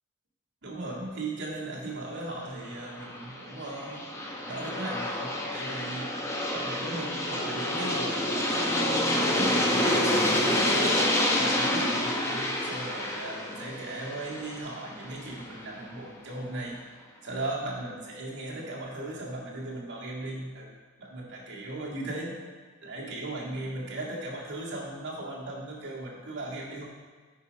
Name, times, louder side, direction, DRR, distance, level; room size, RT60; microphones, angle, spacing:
voice 1, 0.6-4.0 4.5-6.2 6.5-8.7 9.2-11.0 11.4-16.8 17.2-22.4 22.8-26.8, right 2 dB, 55° right, -4 dB, 1.9 m, -37 dB
Aircraft, 2.8-15.6, left 1 dB, 15° left, 0.8 m, -28 dB
8.7 x 5.0 x 5.2 m, 1.5 s
head